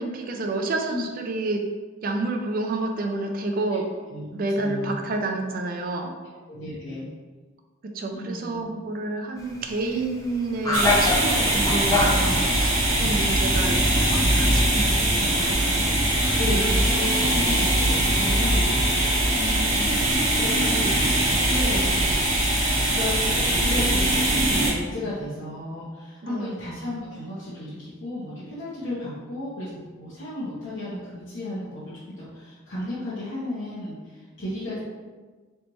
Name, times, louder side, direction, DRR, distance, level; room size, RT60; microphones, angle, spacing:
voice 1, 0.0-1.7 2.0-3.9 4.3-6.2 7.8-15.9 26.2-26.6, right 2 dB, 45° right, 3 dB, 0.4 m, -29 dB
voice 2, 4.6-5.0 6.5-7.0 8.1-8.6 12.9-13.2 16.4-22.0 22.8-34.8, left 1 dB, 65° left, -10 dB, 1.0 m, -33 dB
sound 1, 9.4-17.5, left 2 dB, 15° left, 0.5 m, -30 dB
sound 2, 10.7-24.7, right 1 dB, 80° right, 1.2 m, -22 dB
4.0 x 3.3 x 3.0 m, 1.4 s
head